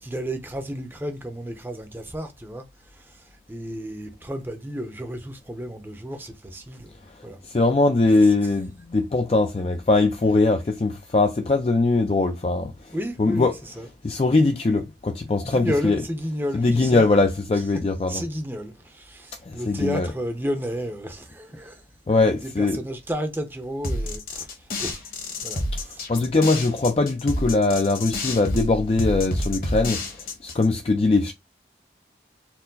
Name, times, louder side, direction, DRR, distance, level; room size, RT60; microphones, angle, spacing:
voice 1, 0.0-7.4 7.7-7.8 8.1-8.6 10.3-10.4 12.9-13.9 15.4-17.8 18.1-21.8 22.2-25.1 25.4-26.0, equal, 10° right, 0.6 m, -33 dB
voice 2, 7.5-12.7 13.2-13.5 14.0-16.0 16.5-18.2 19.5-20.1 22.1-22.8 26.1-30.0 30.4-31.3, left 3 dB, 35° left, 0.4 m, -21 dB
sound 1, 23.8-30.6, left 1 dB, 55° left, 1.2 m, -29 dB
4.4 x 2.0 x 3.8 m
head